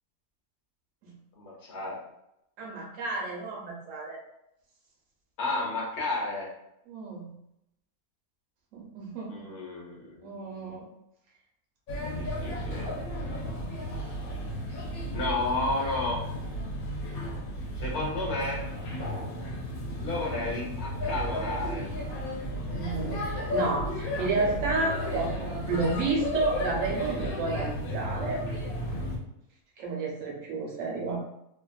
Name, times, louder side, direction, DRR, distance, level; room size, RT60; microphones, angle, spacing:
voice 1, 1.4-2.0 5.4-6.5 9.3-10.7 12.1-12.9 15.1-16.2 17.8-18.6 20.0-21.8, left 2 dB, 55° left, -3 dB, 1.1 m, -32 dB
voice 2, 2.6-4.2 6.9-7.3 8.7-9.5 10.2-10.9 22.7-28.4 29.8-31.2, right 3 dB, 65° right, -1 dB, 1.0 m, -31 dB
Male speech man speaking / Child speech kid speaking / Chatter, 11.9-29.2, equal, 85° left, 1.2 m, -33 dB
2.8 x 2.4 x 2.3 m, 0.82 s
omnidirectional pair, 1.5 m